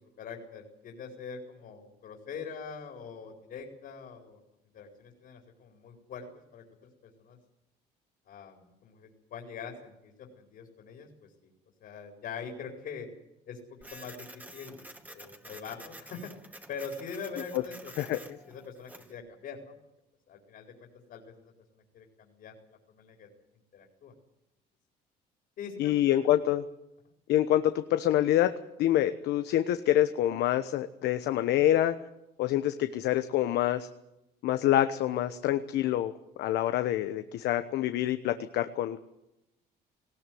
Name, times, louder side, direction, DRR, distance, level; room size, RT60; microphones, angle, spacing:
voice 1, 0.2-4.4 4.7-6.3 6.5-6.6 7.0-7.4 8.3-11.1 11.8-13.1 13.5-14.3 14.5-16.3 16.7-18.2 18.5-19.7 20.3-21.5 21.9-22.5 22.9-23.3 23.7-24.1 25.6-25.9, left 6 dB, 60° left, 3 dB, 4.6 m, -43 dB
Printer, 13.8-19.2, right 1 dB, 10° right, 2.2 m, -49 dB
voice 2, 25.8-26.6 27.3-28.5 28.8-31.9 32.4-33.9 34.4-36.1 36.4-39.0, left 12 dB, 80° left, 10 dB, 1.2 m, -26 dB
19.5 x 17.0 x 9.3 m, 0.88 s
cardioid pair, 110°, 17 cm